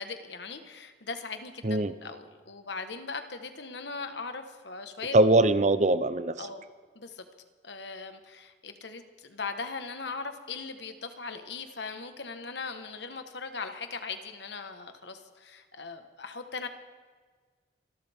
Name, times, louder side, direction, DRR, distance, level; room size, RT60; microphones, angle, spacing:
voice 1, 0.0-5.2 6.4-6.6 6.9-7.2 7.6-16.7, left 4 dB, 70° left, 8 dB, 1.4 m, -39 dB
voice 2, 1.6-1.9 5.1-6.5, right 2 dB, 40° right, 13 dB, 0.7 m, -22 dB
27.0 x 12.5 x 3.6 m, 1.5 s
head